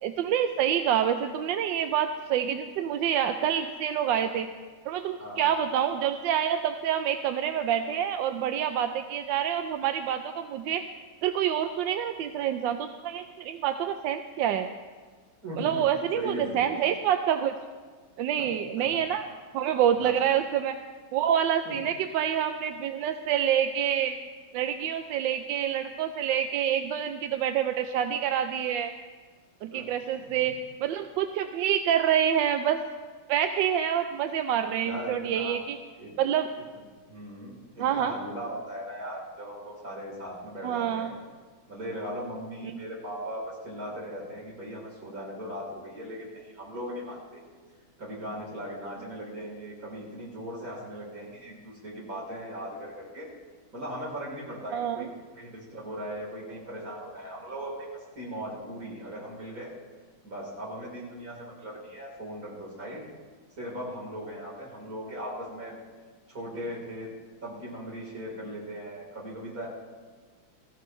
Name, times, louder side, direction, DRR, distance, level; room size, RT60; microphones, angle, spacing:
voice 1, 0.0-4.5 4.9-10.8 11.2-14.7 15.6-17.5 18.2-19.2 19.5-20.8 21.1-24.2 24.5-28.9 29.6-30.5 30.8-32.8 33.3-35.8 36.2-36.5 37.8-38.1 40.6-41.1 54.7-55.1, right 9 dB, 70° right, 7 dB, 1.2 m, -27 dB
voice 2, 5.2-5.5 15.4-15.8 16.1-16.6 18.4-19.0 19.9-20.1 21.6-21.9 29.7-29.9 30.2-30.3 34.7-35.6 36.0-36.1 37.1-41.1 41.7-47.4 48.0-53.3 53.7-55.1 55.3-57.9 58.1-59.7 60.2-63.1 63.6-65.8 66.3-67.1 67.4-69.7, equal, 40° right, -3 dB, 4.2 m, -38 dB
19.5 x 14.5 x 3.2 m, 1.5 s
omnidirectional pair, 2.3 m